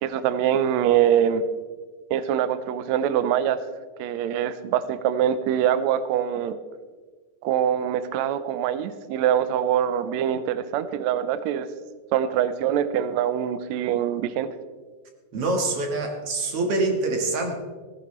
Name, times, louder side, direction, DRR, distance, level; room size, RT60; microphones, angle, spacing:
voice 1, 0.0-1.4 2.1-3.6 4.0-6.6 7.4-11.7 12.1-14.5, right 10 dB, 85° right, 12 dB, 1.6 m, -24 dB
voice 2, 15.3-17.7, right 2 dB, 50° right, 3 dB, 2.1 m, -25 dB
16.0 x 15.0 x 3.2 m, 1.4 s
omnidirectional pair, 4.0 m